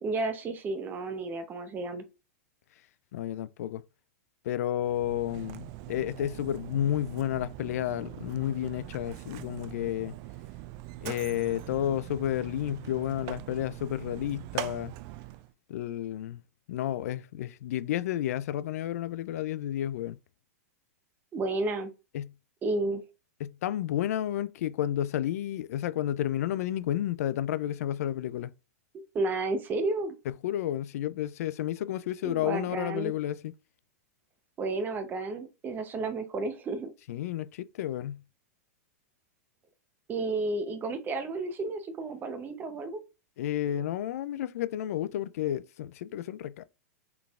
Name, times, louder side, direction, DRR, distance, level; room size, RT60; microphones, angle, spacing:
voice 1, 0.0-2.0 21.3-21.9 22.6-23.0 28.9-30.2 32.2-33.1 34.6-36.9 40.1-43.0, right 3 dB, 20° right, 0.7 m, -32 dB
voice 2, 3.1-3.8 4.4-10.1 11.0-14.9 15.7-16.4 16.7-20.2 22.1-22.3 23.4-28.5 30.4-33.5 37.1-38.2 43.4-46.6, left 12 dB, 70° left, 0.4 m, -31 dB
Mechanisms, 4.8-15.5, right 15 dB, 40° right, 0.3 m, -42 dB
3.8 x 3.4 x 2.4 m
hypercardioid pair, 125°, 9 cm